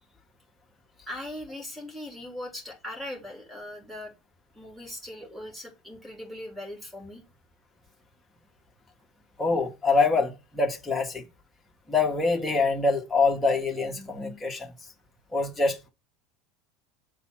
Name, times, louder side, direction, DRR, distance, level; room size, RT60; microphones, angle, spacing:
voice 1, 1.1-4.1 4.5-7.2, left 1 dB, 10° right, 3.1 m, -39 dB
voice 2, 9.4-11.2 11.9-14.7 15.3-15.9, left 3 dB, 10° left, 2.1 m, -25 dB
7.4 x 4.1 x 6.2 m
figure-of-eight pair, 75°, 0 cm